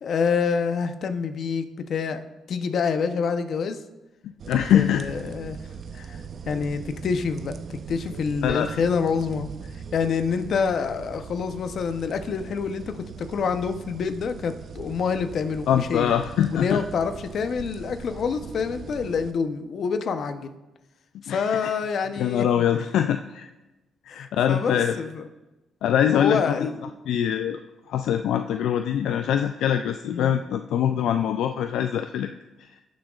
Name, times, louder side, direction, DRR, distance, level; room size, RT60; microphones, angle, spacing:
voice 1, 0.0-3.8 4.7-5.6 5.9-16.1 16.5-20.5 21.2-22.5 24.1-25.3 26.1-26.9 30.1-30.3, left 5 dB, 60° left, 8 dB, 0.7 m, -27 dB
sound 1, 4.4-19.3, right 6 dB, 55° right, 0.6 m, -40 dB
voice 2, 4.5-5.0 8.4-8.7 15.7-16.8 21.3-21.6 22.2-23.5 24.1-25.0 25.8-26.6 27.1-27.6 27.9-32.3, left 9 dB, 80° left, 7 dB, 0.3 m, -23 dB
16.5 x 6.3 x 2.4 m, 1.0 s
cardioid pair, 90°, 0 cm